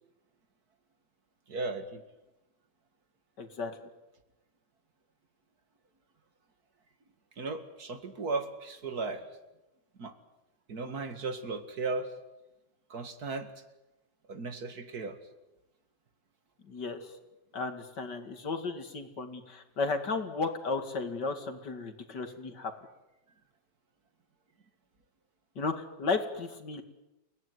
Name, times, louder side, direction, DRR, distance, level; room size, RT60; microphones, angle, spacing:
voice 1, 1.5-2.0 7.4-9.2 10.0-10.1 10.7-12.1 12.9-13.5 14.3-15.2, right 3 dB, 50° right, 8 dB, 2.5 m, -36 dB
voice 2, 3.4-3.7 16.7-17.1 17.5-22.7 25.6-26.8, left 4 dB, 55° left, 7 dB, 2.8 m, -34 dB
29.5 x 18.0 x 9.6 m, 1.0 s
omnidirectional pair, 2.2 m